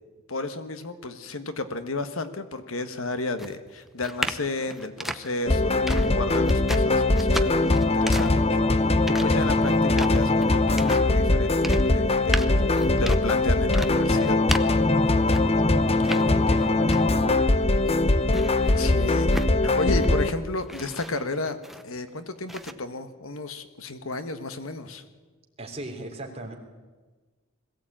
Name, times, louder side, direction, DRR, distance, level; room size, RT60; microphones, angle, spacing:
voice 1, 0.3-8.6 9.1-14.4 18.6-19.3 19.6-21.6 21.8-25.0, left 2 dB, 85° left, 10 dB, 1.5 m, -33 dB
sound 1, 3.4-15.7 16.0-17.3 17.6-20.2 20.6-22.1 22.5-22.7, right 1 dB, ahead, 0.8 m, -35 dB
sound 2, 5.5-20.3, left 2 dB, 30° left, 0.9 m, -21 dB
voice 2, 16.0-17.4 25.6-26.5, right 2 dB, 30° right, 2 dB, 3.3 m, -38 dB
21.5 x 16.0 x 8.8 m, 1.3 s
head